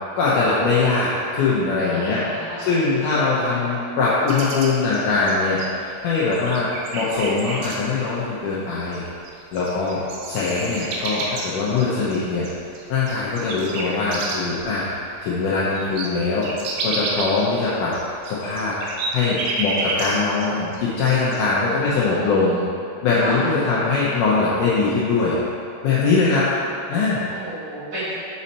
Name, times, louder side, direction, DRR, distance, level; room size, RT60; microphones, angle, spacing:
voice 1, 0.2-2.2 2.7-9.0 9.5-12.5 12.9-14.9 15.2-16.5 16.8-17.9 18.3-18.8 19.1-22.6 23.0-25.4 25.8-26.5 26.9-27.3, left 4 dB, 80° left, -8 dB, 1.9 m, -21 dB
voice 2, 1.9-3.7 21.9-22.7 23.2-23.9 26.6-26.7 27.3-28.1, equal, 55° right, -15 dB, 2.9 m, -34 dB
sound 1, 4.3-5.9 6.3-7.8 8.9-9.0 9.3-14.6 15.0-15.1 15.4-20.5 20.7-21.4, right 3 dB, 85° right, 2.9 m, -30 dB
6.2 x 5.3 x 4.2 m, 2.5 s
omnidirectional pair, 4.5 m